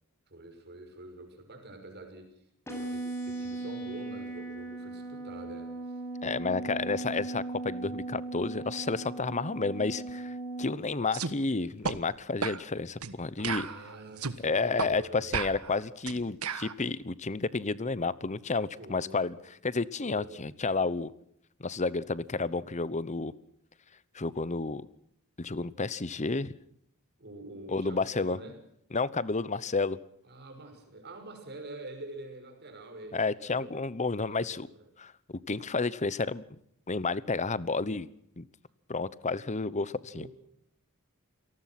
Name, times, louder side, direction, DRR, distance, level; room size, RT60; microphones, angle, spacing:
voice 1, 0.3-2.4 2.7-6.0 6.4-6.8 13.4-15.4 18.8-19.4 20.1-20.4 27.2-28.6 30.2-33.7 34.1-34.9 37.6-38.0 40.1-40.3, right 2 dB, 50° right, 6 dB, 6.1 m, -46 dB
sound 1, 2.7-10.7, right 2 dB, 10° left, 7.2 m, -38 dB
voice 2, 6.2-13.7 14.4-19.4 19.6-21.1 21.6-23.3 24.1-24.9 25.4-26.5 27.7-28.4 28.9-30.0 33.1-34.7 35.0-36.4 36.9-38.1 38.4-38.5 38.9-40.3, left 3 dB, 35° left, 19 dB, 0.9 m, -31 dB
sound 2, 11.1-11.3 11.8-12.0 12.4-12.6 13.0-13.2 13.4-14.4 14.8-14.9 15.3-16.7, right 5 dB, 90° right, 1.4 m, -33 dB
28.0 x 19.0 x 6.0 m, 0.70 s
head